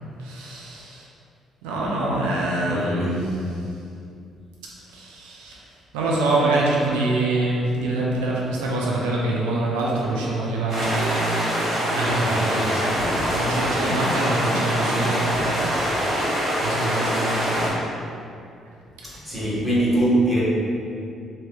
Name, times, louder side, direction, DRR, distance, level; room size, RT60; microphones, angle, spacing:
voice 1, 0.2-1.1 1.6-3.7 4.9-5.6 5.9-15.7 16.1-17.8 19.1-19.2, right 2 dB, 75° right, -4 dB, 0.5 m, -25 dB
voice 2, 2.7-3.4 19.0-20.4, right 1 dB, ahead, -9 dB, 1.2 m, -22 dB
sound 1, 10.7-17.7, equal, 55° right, 0.8 m, -24 dB
sound 2, 11.5-16.4, left 1 dB, 65° left, 0.7 m, -35 dB
3.0 x 2.8 x 2.3 m, 2.5 s
hypercardioid pair, 45°, 0 cm